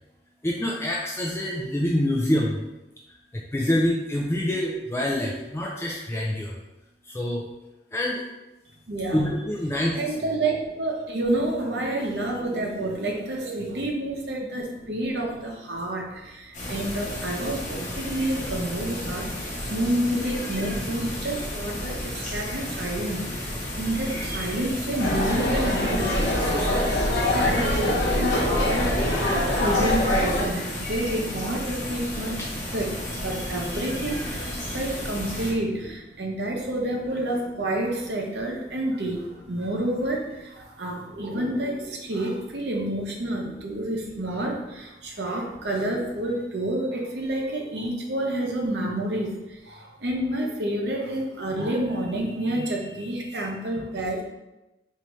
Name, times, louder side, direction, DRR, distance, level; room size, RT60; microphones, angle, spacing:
voice 1, 0.4-2.6 3.1-6.6 7.0-7.5 7.9-8.3 9.1-10.1 16.5-16.7 32.4-32.5 40.6-40.8 41.1-41.2 45.0-45.2, left 1 dB, 15° left, -2 dB, 0.4 m, -27 dB
voice 2, 8.9-9.3 9.9-26.2 26.5-26.7 27.1-32.3 32.7-54.2, right 1 dB, 65° right, -1 dB, 0.8 m, -29 dB
sound 1, 16.5-35.5, left 1 dB, 45° left, 1.0 m, -33 dB
sound 2, 25.0-30.4, left 1 dB, 65° left, 1.0 m, -23 dB
4.7 x 2.7 x 3.1 m, 1.0 s
head